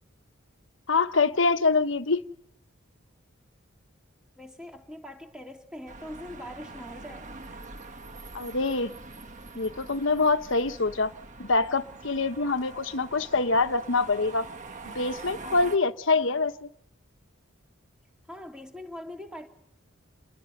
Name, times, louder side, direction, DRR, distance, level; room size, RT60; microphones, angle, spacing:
voice 1, 0.9-2.2 8.3-8.9 9.5-11.1 11.4-14.5 14.8-16.5, left 3 dB, 65° left, 1.1 m, -25 dB
voice 2, 4.4-7.9 16.1-16.4 18.3-19.5, left 1 dB, 5° right, 3.0 m, -43 dB
sound 1, 5.9-15.8, right 3 dB, 35° right, 1.4 m, -44 dB
28.5 x 22.0 x 6.7 m
head